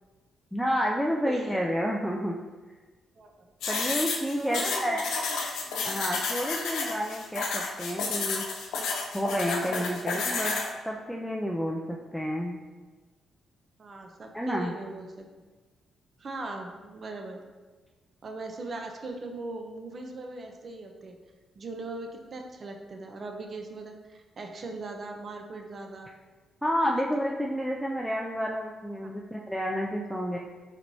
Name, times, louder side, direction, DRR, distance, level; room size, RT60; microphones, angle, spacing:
voice 1, 0.5-2.4 3.7-5.0 5.8-8.4 9.1-12.6 14.3-14.7 26.6-30.4, equal, ahead, -1 dB, 0.3 m, -30 dB
voice 2, 1.2-1.6 2.0-2.1 3.2-3.5 4.4-5.4 9.5-10.0 13.8-15.2 16.2-17.4 18.2-21.2 21.6-26.1 26.9-27.0 29.0-29.1, right 2 dB, 45° right, 3 dB, 0.6 m, -39 dB
sound 1, 3.6-10.7, left 4 dB, 90° left, 0.6 m, -31 dB
4.4 x 4.2 x 2.7 m, 1.3 s
cardioid pair, 95°, 0 cm